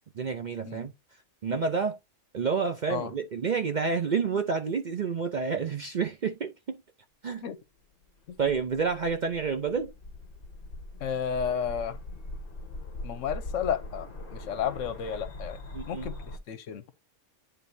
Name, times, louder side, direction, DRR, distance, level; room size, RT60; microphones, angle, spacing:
voice 1, 0.1-0.9 1.4-2.0 2.3-6.8 7.2-7.4 8.4-9.9 15.7-16.1, right 5 dB, 50° right, 0.6 m, -29 dB
sound 1, 8.0-16.4, left 2 dB, 45° left, 1.2 m, -41 dB
voice 2, 11.0-12.0 13.0-15.6 15.9-16.8, left 8 dB, 75° left, 1.1 m, -32 dB
10.0 x 3.8 x 2.6 m
omnidirectional pair, 1.3 m